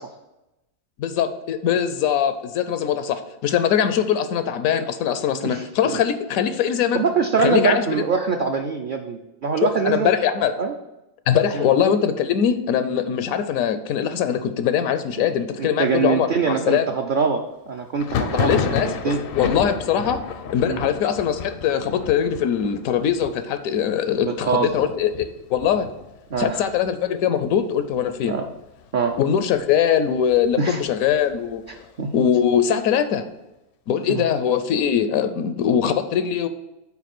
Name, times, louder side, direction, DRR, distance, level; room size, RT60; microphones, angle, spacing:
voice 1, 1.0-7.0 7.4-7.9 9.6-10.6 11.3-16.9 18.3-18.9 19.4-20.2 20.5-25.9 26.4-28.3 29.2-31.9 32.1-33.2 33.9-36.5, left 8 dB, 85° left, 11 dB, 1.0 m, -22 dB
voice 2, 5.4-6.0 6.9-10.1 10.6-10.7 11.5-11.7 15.6-19.2 20.7-20.9 24.2-24.9 26.3-26.7 28.3-28.5 28.9-29.2 30.6-30.8 32.0-32.1 34.1-34.3, right 5 dB, 60° right, 3 dB, 0.5 m, -23 dB
Thunder, 18.0-27.5 27.7-28.4 28.7-29.7 30.1-31.8, left 6 dB, 65° left, 0.6 m, -32 dB
5.8 x 4.4 x 5.9 m, 0.96 s
omnidirectional pair, 1.4 m